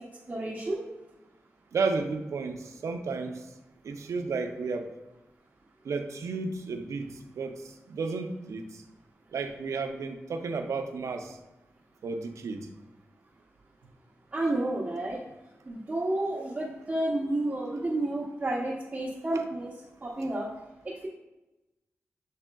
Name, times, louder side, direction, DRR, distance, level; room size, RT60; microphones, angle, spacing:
voice 1, 0.3-0.8 14.3-15.2 15.7-19.7 20.0-20.5 20.8-21.1, right 1 dB, 30° right, -5 dB, 0.7 m, -30 dB
voice 2, 1.7-3.5 3.8-4.9 5.8-8.8 9.3-11.4 12.0-12.7 19.3-19.4, right 4 dB, 85° right, 6 dB, 0.4 m, -33 dB
6.7 x 3.5 x 2.2 m, 1.0 s
wide cardioid pair, 120°, 5 cm